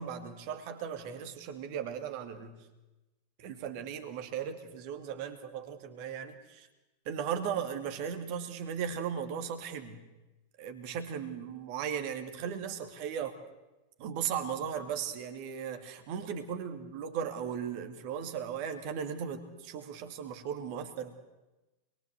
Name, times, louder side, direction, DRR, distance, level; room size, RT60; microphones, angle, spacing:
voice 1, 0.0-2.6 3.4-6.7 7.1-10.0 10.6-13.4 14.0-21.1, right 8 dB, 45° right, 7 dB, 2.5 m, -37 dB
26.5 x 22.5 x 8.1 m, 1.1 s
figure-of-eight pair, 90°, 0 cm